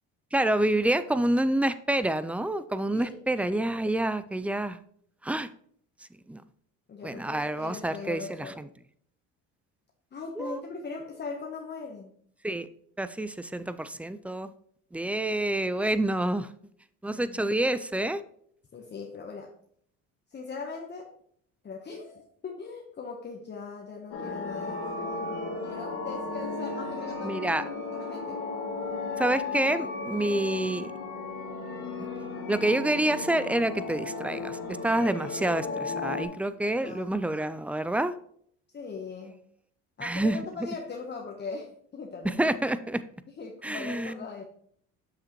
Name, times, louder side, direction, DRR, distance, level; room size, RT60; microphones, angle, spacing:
voice 1, 0.3-4.8 5.2-5.5 6.3-6.4 7.0-8.7 10.4-10.6 12.4-12.7 13.0-14.5 14.9-16.5 17.0-18.2 27.2-27.6 29.2-30.9 32.5-38.1 40.0-40.4 42.2-43.0 43.6-44.1, right 1 dB, 5° right, 13 dB, 0.3 m, -28 dB
voice 2, 6.9-8.6 10.1-12.1 17.0-17.6 18.7-19.5 20.3-21.1 21.6-24.8 25.6-28.4 30.3-30.4 36.8-37.1 38.7-39.4 40.0-42.3 43.4-44.4, left 4 dB, 35° left, 0 dB, 1.1 m, -40 dB
sound 1, 24.1-36.3, left 3 dB, 85° left, 1.9 m, -35 dB
7.5 x 6.2 x 3.0 m, 0.63 s
supercardioid pair, 90°, 33 cm